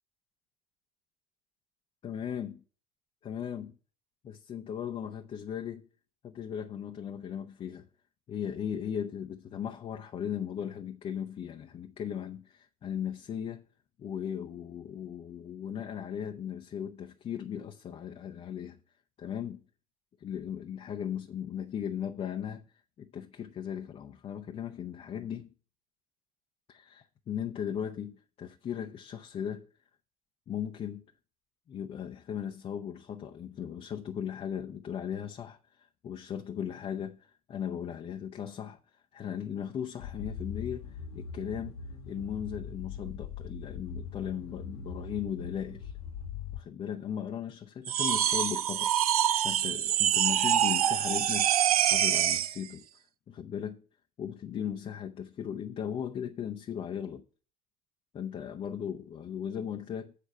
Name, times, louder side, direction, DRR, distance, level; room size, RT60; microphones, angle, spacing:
voice 1, 2.0-2.6 3.2-3.8 4.2-5.9 6.2-7.9 8.3-13.6 14.0-18.8 19.2-19.6 20.2-22.6 23.0-25.5 26.7-29.7 30.5-31.0 31.7-38.8 39.1-41.8 42.1-45.9 46.6-48.9 49.4-52.9 53.3-53.8 54.2-57.2 58.1-60.1, left 8 dB, 30° left, 0.7 m, -37 dB
sound 1, 40.0-46.6, left 6 dB, 70° left, 1.5 m, -41 dB
sound 2, 47.8-52.6, right 10 dB, 75° right, 0.4 m, -26 dB
8.4 x 4.5 x 6.6 m
figure-of-eight pair, 70°, 19 cm